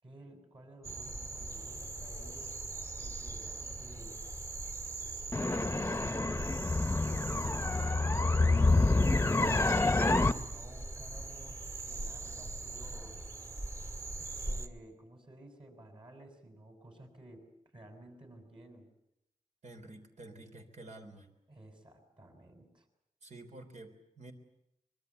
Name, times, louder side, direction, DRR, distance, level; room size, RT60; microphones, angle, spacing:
voice 1, 0.0-2.5 3.0-4.2 5.3-6.3 6.8-8.9 10.0-13.3 14.2-17.4 17.7-18.9 21.5-22.9, right 1 dB, 40° right, 5 dB, 6.3 m, -54 dB
sound 1, 0.8-14.7, right 2 dB, 25° right, 1.9 m, -41 dB
sound 2, 5.3-10.3, left 2 dB, 20° left, 0.9 m, -27 dB
voice 2, 19.6-21.3 23.2-24.3, right 2 dB, 70° right, 4 dB, 3.6 m, -50 dB
24.5 x 22.5 x 8.1 m, 0.83 s
wide cardioid pair, 125°, 12 cm